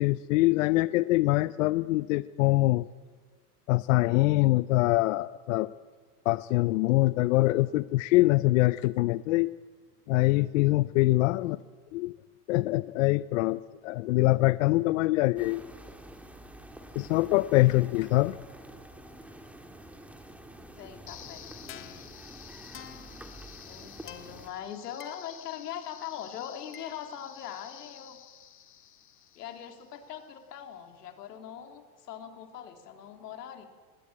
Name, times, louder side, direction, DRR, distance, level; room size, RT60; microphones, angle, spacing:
voice 1, 0.0-2.9 3.7-5.7 6.3-9.5 10.1-11.6 11.9-12.1 12.5-15.6 17.0-18.4, left 19 dB, 55° left, 17 dB, 0.6 m, -24 dB
sound 1, 15.4-24.5, right 1 dB, 5° right, 1.7 m, -48 dB
voice 2, 20.7-22.1 23.6-28.2 29.3-33.7, left 9 dB, 80° left, 5 dB, 3.4 m, -42 dB
sound 2, 21.1-30.1, left 11 dB, 25° left, 1.4 m, -49 dB
20.5 x 17.5 x 8.7 m, 1.5 s
supercardioid pair, 135°, 47 cm